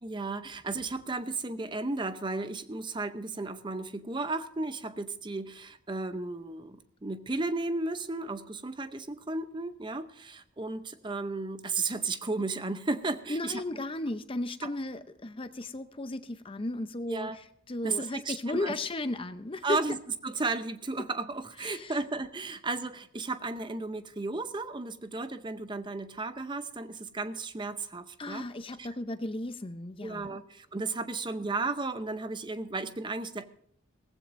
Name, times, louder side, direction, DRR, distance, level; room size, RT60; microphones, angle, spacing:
voice 1, 0.0-13.6 14.6-14.7 17.1-17.4 17.8-18.7 19.6-20.0 20.2-28.5 28.8-28.9 30.0-33.5, right 3 dB, 20° right, 11 dB, 0.7 m, -34 dB
voice 2, 13.3-19.8 21.6-21.9 28.2-30.4, left 2 dB, 25° left, 11 dB, 0.6 m, -35 dB
18.0 x 15.0 x 2.6 m, 0.69 s
head